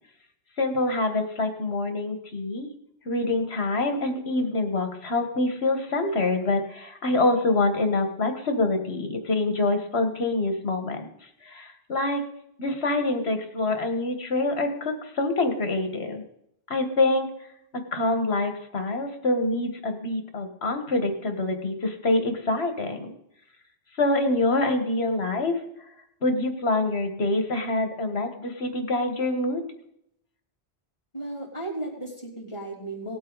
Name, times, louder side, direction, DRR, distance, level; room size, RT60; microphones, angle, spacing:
voice 1, 0.6-2.7 3.1-11.1 11.4-12.2 12.6-16.2 16.7-17.3 17.7-23.1 24.0-25.5 26.2-29.6, left 2 dB, 70° left, 6 dB, 1.8 m, -25 dB
voice 2, 31.1-33.2, right 1 dB, 25° left, -4 dB, 3.3 m, -35 dB
19.0 x 8.0 x 4.0 m, 0.76 s
omnidirectional pair, 1.1 m